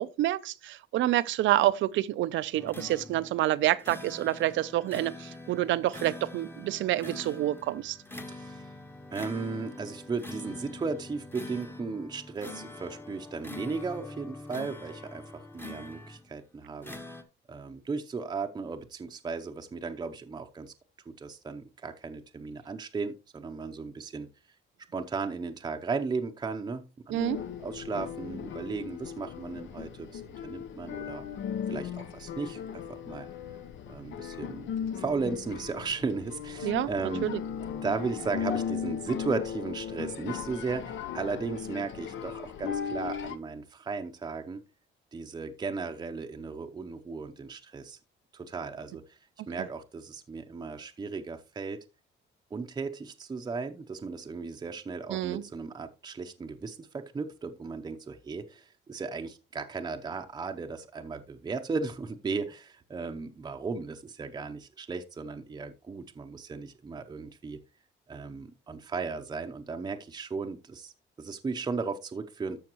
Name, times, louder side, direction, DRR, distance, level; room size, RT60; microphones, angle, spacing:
voice 1, 0.0-8.0 27.1-27.4 36.6-36.9 37.2-37.4 55.1-55.4, right 14 dB, 75° right, 0.5 m, -28 dB
sound 1, 2.5-16.3 16.8-17.2, left 2 dB, 10° left, 0.9 m, -44 dB
voice 2, 8.3-8.7 9.1-17.0 17.5-20.7 21.1-24.3 24.9-27.2 27.6-31.3 31.7-33.3 33.9-34.7 34.9-37.3 37.8-44.6 45.1-48.0 48.3-49.2 49.5-51.8 52.5-67.6 68.1-70.9 71.2-72.6, right 4 dB, 20° right, 0.6 m, -36 dB
sound 2, 27.2-43.4, left 8 dB, 75° left, 0.8 m, -37 dB
13.0 x 5.7 x 3.0 m
cardioid pair, 145°, 20 cm